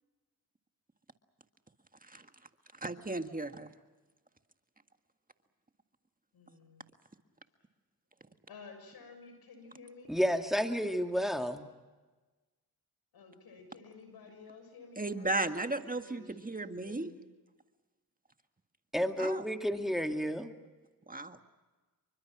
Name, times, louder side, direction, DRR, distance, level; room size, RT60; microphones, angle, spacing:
voice 1, 2.7-3.7 15.0-17.1 19.2-19.4 21.1-21.4, right 2 dB, 25° right, 7 dB, 1.8 m, -35 dB
voice 2, 6.3-6.9 8.5-10.2 13.1-17.3 19.8-20.0, left 4 dB, 85° left, 7 dB, 6.8 m, -53 dB
voice 3, 10.1-11.7 18.9-20.5, equal, ahead, 5 dB, 2.3 m, -31 dB
28.5 x 24.5 x 6.1 m, 1.2 s
cardioid pair, 60°, 36 cm